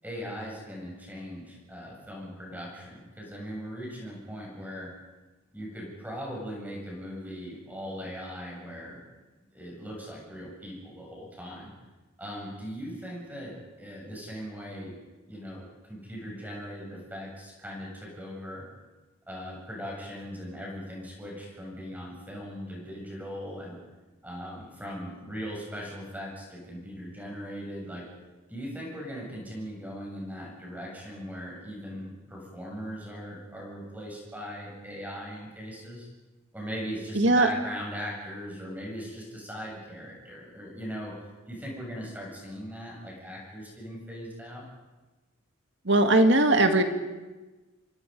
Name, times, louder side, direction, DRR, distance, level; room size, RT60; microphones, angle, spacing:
voice 1, 0.0-4.9 5.5-9.0 9.5-11.7 12.2-14.9 15.3-18.7 19.3-23.8 24.2-28.1 28.5-36.1 36.5-41.2 41.5-44.7, equal, 10° right, -3 dB, 7.5 m, -39 dB
voice 2, 37.1-37.5 45.9-46.8, right 2 dB, 55° right, 6 dB, 2.1 m, -19 dB
28.0 x 23.0 x 5.4 m, 1.2 s
head